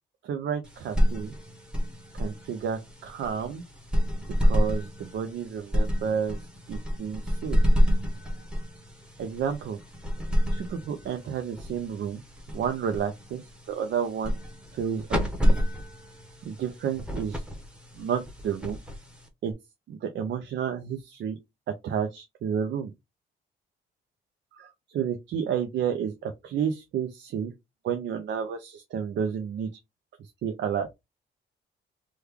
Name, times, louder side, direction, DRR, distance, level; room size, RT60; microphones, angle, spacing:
voice 1, 0.2-1.3 2.2-3.6 4.4-6.4 6.7-7.6 9.2-9.8 10.5-12.2 12.5-13.4 13.7-14.3 14.7-15.6 16.5-17.4 18.0-18.8 19.4-19.5 19.9-21.4 21.8-22.9 24.5-27.5 27.8-29.7 30.4-30.9, right 7 dB, 65° right, 0.5 m, -31 dB
sound 1, 0.6-19.5, equal, 5° right, 0.9 m, -29 dB
3.2 x 2.3 x 3.4 m
cardioid pair, 90°, 20 cm